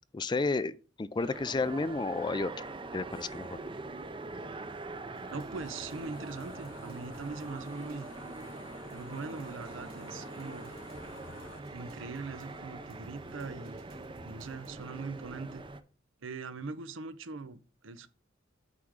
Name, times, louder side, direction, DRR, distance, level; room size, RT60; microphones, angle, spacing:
voice 1, 0.1-2.5 2.9-3.6, left 3 dB, 25° left, 0.4 m, -31 dB
sound 1, 1.2-15.8, right 2 dB, 25° right, 0.6 m, -43 dB
sound 2, 5.1-14.7, right 1 dB, 55° right, 2.0 m, -55 dB
voice 2, 5.3-8.1 8.9-10.7 11.7-13.8 14.2-15.6 16.2-18.1, right 4 dB, 90° right, 0.7 m, -41 dB
sound 3, 5.5-11.6, left 4 dB, 70° left, 1.0 m, -53 dB
8.2 x 3.6 x 6.3 m
head